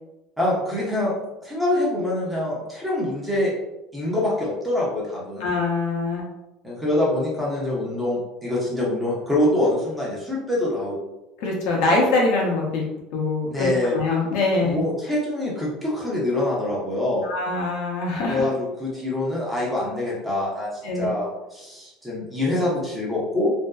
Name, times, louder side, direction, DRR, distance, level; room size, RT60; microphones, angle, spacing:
voice 1, 0.4-1.2 1.4-3.5 3.9-5.5 6.6-11.0 13.5-14.0 14.6-17.3 18.3-23.6, left 1 dB, 5° right, -5 dB, 0.8 m, -25 dB
voice 2, 5.4-6.3 11.4-12.8 13.1-14.8 17.2-18.4 20.8-21.1, left 3 dB, 70° left, -2 dB, 0.7 m, -23 dB
2.5 x 2.1 x 2.3 m, 0.94 s
supercardioid pair, 130°, 0 cm